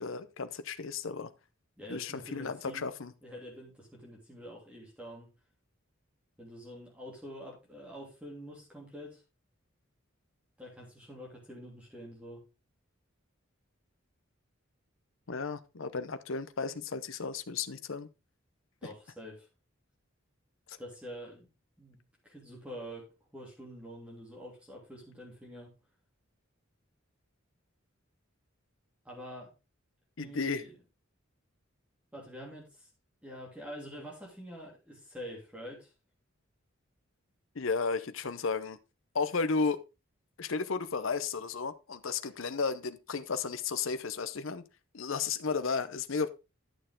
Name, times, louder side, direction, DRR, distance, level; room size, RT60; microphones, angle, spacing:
voice 1, 0.0-1.3 1.9-3.1 15.3-18.1 20.7-20.8 30.2-30.6 37.6-38.8 39.1-39.8 40.4-44.6 44.9-46.3, left 4 dB, 75° left, 0.8 m, -33 dB
voice 2, 1.8-2.9 3.2-5.3 6.4-9.2 10.6-12.4 18.8-19.5 20.8-21.5 21.8-23.1 23.3-25.7 29.0-29.5 30.2-30.8 32.1-32.9 33.2-35.9, equal, 5° right, 2.9 m, -46 dB
11.0 x 6.7 x 3.7 m
head